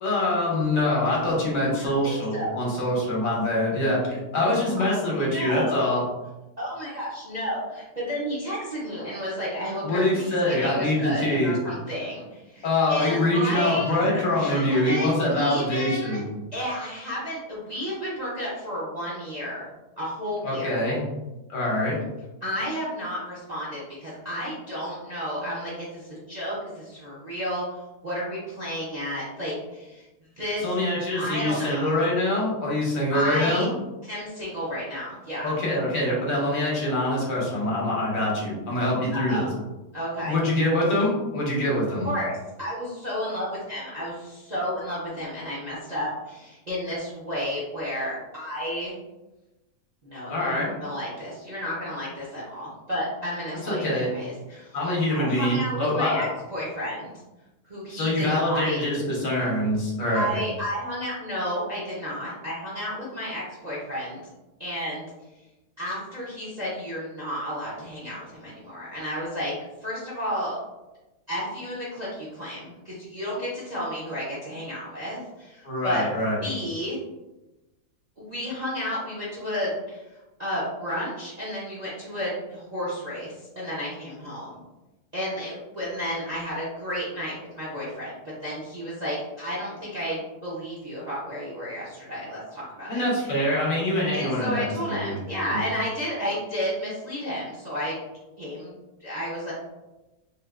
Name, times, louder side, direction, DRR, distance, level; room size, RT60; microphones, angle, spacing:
voice 1, 0.0-6.0 9.8-11.5 12.6-16.2 20.4-21.1 21.5-22.0 30.6-33.7 35.4-39.4 40.3-42.1 50.3-50.7 53.6-54.1 54.7-56.3 57.9-60.4 75.6-76.4 92.9-95.2 95.5-95.6, left 1 dB, 65° left, -4 dB, 1.2 m, -24 dB
voice 2, 1.8-2.5 4.7-4.9 5.1-5.8 6.6-14.0 14.4-16.2 16.5-19.7 20.0-20.7 22.4-30.1 30.4-30.7 31.1-32.0 33.1-33.6 34.0-35.6 39.1-39.5 39.9-40.4 42.0-48.9 50.0-54.8 55.1-57.1 57.6-58.8 60.1-64.2 64.6-65.1 65.8-69.5 69.8-70.6 71.3-76.0 76.4-77.0 78.2-80.1 80.4-84.6 85.1-88.2 88.4-93.3 94.1-97.9 98.4-98.7 99.0-99.5, equal, 45° right, -8 dB, 0.6 m, -32 dB
3.3 x 2.5 x 2.4 m, 1.0 s
omnidirectional pair, 1.7 m